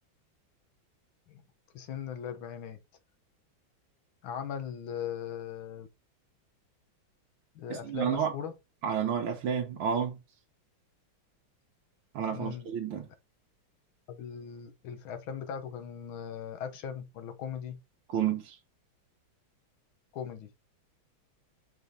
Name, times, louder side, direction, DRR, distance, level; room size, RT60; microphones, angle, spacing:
voice 1, 1.7-2.8 4.2-5.9 7.6-8.5 12.3-12.7 14.1-17.8 20.1-20.5, left 8 dB, 80° left, 1.8 m, -39 dB
voice 2, 7.7-8.3 8.8-10.2 12.1-13.1 18.1-18.6, right 8 dB, 90° right, 1.8 m, -30 dB
6.7 x 3.5 x 4.1 m
omnidirectional pair, 2.2 m